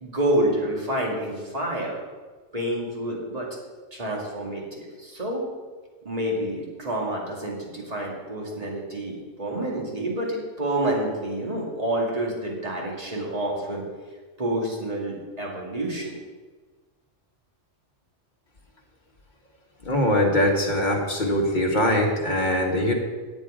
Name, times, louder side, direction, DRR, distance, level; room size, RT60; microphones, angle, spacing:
voice 1, 0.0-2.0 2.5-3.5 3.9-5.5 6.0-13.8 14.4-16.2, right 1 dB, 30° right, -2 dB, 2.3 m, -28 dB
voice 2, 19.8-22.9, left 1 dB, 40° left, 0 dB, 1.8 m, -22 dB
10.0 x 8.7 x 4.9 m, 1.3 s
omnidirectional pair, 1.3 m